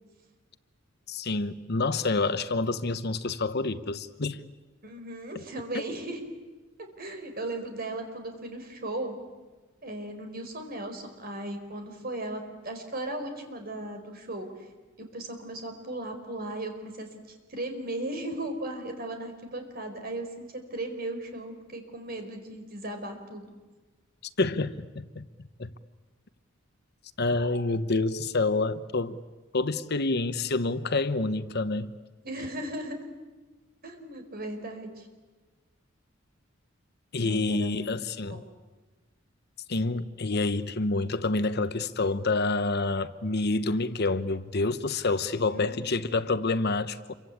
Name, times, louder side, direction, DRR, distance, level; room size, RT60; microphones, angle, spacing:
voice 1, 1.1-4.4 5.3-5.4 24.4-25.2 25.6-25.7 27.2-29.2 29.5-32.0 37.1-38.4 39.7-47.1, left 3 dB, 55° left, 1.0 m, -28 dB
voice 2, 4.8-6.2 6.8-9.2 9.8-14.5 15.0-17.1 17.5-23.5 32.2-33.0 33.8-35.1 37.1-38.0 38.3-38.5 45.5-45.9, right 1 dB, 50° right, 4.6 m, -37 dB
28.0 x 24.0 x 8.6 m
head